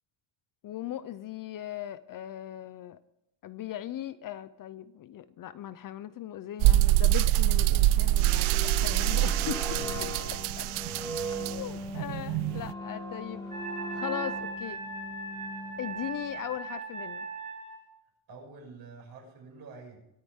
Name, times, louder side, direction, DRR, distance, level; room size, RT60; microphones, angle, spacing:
voice 1, 0.6-3.0 3.4-9.6 10.3-10.7 11.5-13.4 13.9-14.8 15.8-17.3, left 11 dB, 45° left, 15 dB, 0.5 m, -39 dB
sound 1, 6.6-12.7, right 15 dB, 80° right, 0.6 m, -25 dB
sound 2, 7.8-16.5, equal, 5° left, 3.5 m, -40 dB
Wind instrument woodwind instrument, 13.5-17.8, right 4 dB, 15° right, 3.9 m, -38 dB
voice 2, 18.3-20.0, right 4 dB, 50° right, -1 dB, 6.4 m, -48 dB
23.0 x 9.4 x 3.6 m, 0.86 s
cardioid pair, 170°, 48 cm